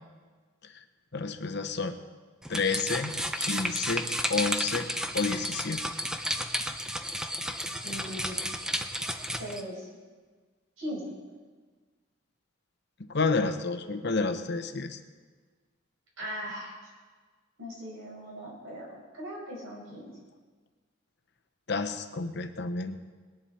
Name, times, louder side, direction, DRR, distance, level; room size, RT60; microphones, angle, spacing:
voice 1, 1.1-2.0 2.5-4.9 5.1-5.8 13.1-15.0 21.7-23.1, left 4 dB, 50° left, 8 dB, 0.8 m, -30 dB
sound 1, 2.4-9.6, equal, 5° right, 0.5 m, -32 dB
voice 2, 7.8-8.4 9.4-9.9 10.8-11.1 16.2-16.8 17.6-20.1, equal, 85° right, -3 dB, 5.6 m, -39 dB
20.0 x 10.5 x 4.3 m, 1.4 s
head